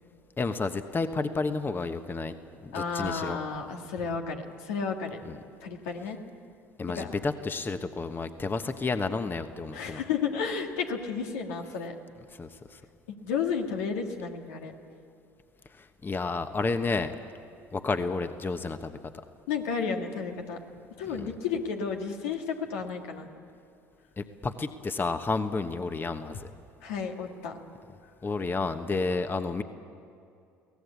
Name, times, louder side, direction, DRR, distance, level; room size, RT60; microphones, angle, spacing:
voice 1, 0.4-2.3 2.6-3.4 5.3-5.4 6.8-10.0 12.3-12.8 15.8-17.2 17.7-19.0 21.1-21.3 24.2-26.5 28.2-29.6, left 3 dB, 25° left, 8 dB, 1.2 m, -31 dB
voice 2, 2.7-5.2 5.6-6.2 7.0-7.1 9.7-11.9 13.1-14.7 19.5-20.6 21.0-23.3 26.8-27.6, left 6 dB, 80° left, 2 dB, 2.0 m, -32 dB
23.0 x 17.5 x 8.4 m, 2.5 s
hypercardioid pair, 70°, 8 cm